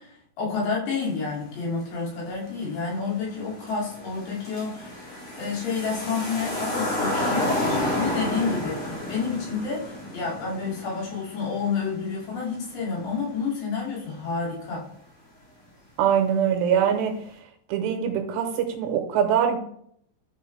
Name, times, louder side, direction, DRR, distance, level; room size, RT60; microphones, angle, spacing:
voice 1, 0.0-5.1 5.4-14.8, left 5 dB, 65° left, -4 dB, 4.6 m, -30 dB
sound 1, 2.8-2.9 3.2-13.0 13.3-13.4, left 1 dB, 40° left, 2.9 m, -30 dB
voice 2, 16.0-17.2 17.7-19.6, right 8 dB, 75° right, 4 dB, 3.0 m, -23 dB
12.0 x 6.4 x 3.3 m, 0.69 s
omnidirectional pair, 5.4 m